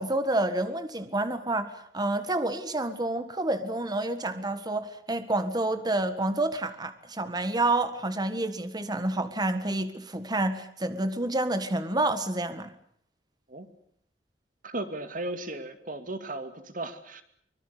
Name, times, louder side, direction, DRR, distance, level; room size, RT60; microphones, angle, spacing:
voice 1, 0.0-12.7, right 2 dB, 25° right, 1.6 m, -29 dB
voice 2, 14.6-17.2, right 2 dB, 50° right, 2.4 m, -36 dB
24.5 x 22.0 x 8.3 m
head